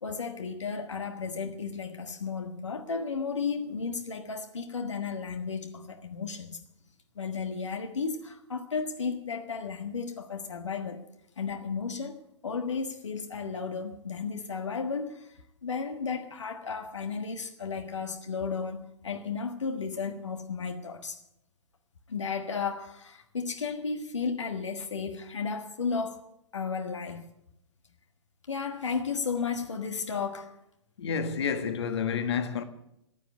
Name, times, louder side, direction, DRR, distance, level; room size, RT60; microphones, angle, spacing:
voice 1, 0.0-6.6 7.1-11.0 11.4-21.2 22.1-26.3 26.5-27.2 28.5-30.6, left 5 dB, 80° left, 1.5 m, -34 dB
voice 2, 31.0-32.6, left 6 dB, 65° left, 1.6 m, -29 dB
15.0 x 9.3 x 9.7 m
figure-of-eight pair, 115°, 15 cm